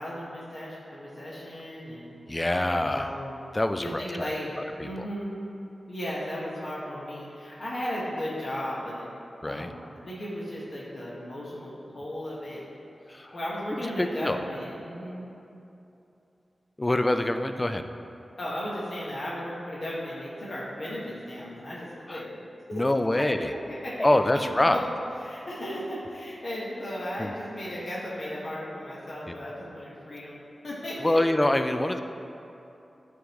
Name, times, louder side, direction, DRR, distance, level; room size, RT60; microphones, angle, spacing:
voice 1, 0.0-2.1 2.8-3.5 3.8-5.4 5.9-9.0 9.5-12.6 13.3-15.2 18.4-22.3 22.7-22.8 23.1-24.1 24.7-24.8 25.2-31.2, equal, 60° left, -7 dB, 1.2 m, -35 dB
voice 2, 2.3-3.1 3.5-4.3 4.8-5.1 9.4-9.7 13.1-13.4 14.0-14.4 16.8-17.8 22.1-22.2 22.7-23.5 24.0-24.8 27.2-27.3 29.3-29.4 31.0-32.0, left 1 dB, 20° left, 8 dB, 0.3 m, -25 dB
11.0 x 3.7 x 3.0 m, 2.8 s
wide cardioid pair, 105°, 0 cm